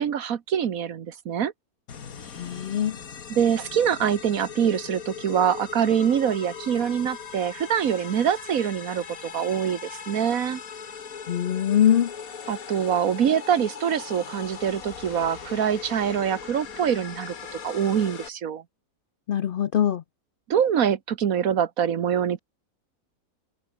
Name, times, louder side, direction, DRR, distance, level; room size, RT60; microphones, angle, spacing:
voice 1, 0.0-1.5 3.3-10.6 12.5-18.6 20.5-22.4, right 8 dB, 65° right, 1.5 m, -24 dB
sound 1, 1.9-18.3, left 7 dB, 65° left, 2.0 m, -39 dB
voice 2, 2.3-3.0 11.3-12.1 19.3-20.0, left 10 dB, 85° left, 0.4 m, -22 dB
omnidirectional pair, 1.6 m